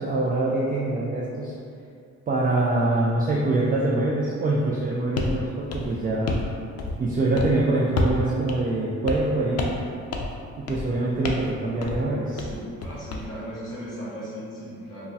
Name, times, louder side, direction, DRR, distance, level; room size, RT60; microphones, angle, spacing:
voice 1, 0.0-1.5 2.3-6.4 7.0-9.7 10.6-12.4, right 2 dB, 30° right, -5 dB, 0.3 m, -24 dB
sound 1, 5.2-5.4 5.7-6.5 6.8-7.1 7.4-7.6 8.0-8.2 8.5-8.6 9.1-9.3 9.6-9.9 10.1-10.4 10.7-10.9 11.2-11.5 11.8-12.0 12.4-13.3, left 2 dB, 55° left, 0.4 m, -28 dB
voice 2, 12.3-15.1, equal, 15° left, -10 dB, 1.5 m, -37 dB
3.3 x 2.1 x 2.7 m, 2.3 s
cardioid pair, 90°, 30 cm